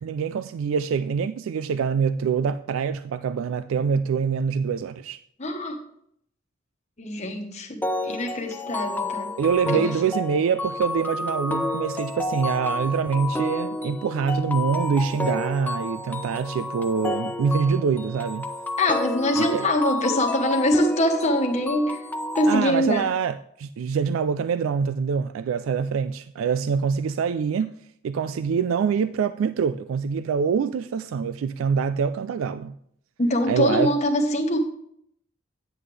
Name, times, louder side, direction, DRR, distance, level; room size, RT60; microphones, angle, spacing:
voice 1, 0.0-5.2 9.4-18.5 19.4-19.7 22.5-27.7 28.0-32.7 33.5-33.9, right 6 dB, 85° right, 0.3 m, -25 dB
voice 2, 5.4-5.8 7.0-9.4 9.7-10.0 18.8-22.1 22.3-23.1 33.2-34.6, left 1 dB, 35° left, 1.2 m, -24 dB
sound 1, 7.8-22.6, left 2 dB, 10° left, 0.5 m, -30 dB
9.5 x 7.8 x 3.3 m
head